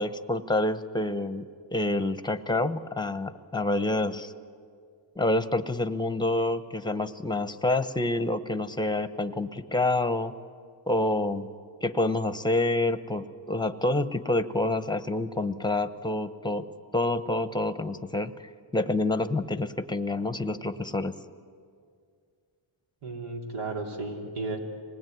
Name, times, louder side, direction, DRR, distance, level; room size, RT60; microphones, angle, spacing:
voice 1, 0.0-1.5 1.7-4.3 5.2-10.3 10.9-11.5 11.8-21.1, left 2 dB, 10° left, 11 dB, 0.9 m, -28 dB
voice 2, 23.0-24.6, right 3 dB, 80° right, 1 dB, 3.3 m, -34 dB
26.0 x 19.5 x 9.4 m, 2.2 s
wide cardioid pair, 100°, 49 cm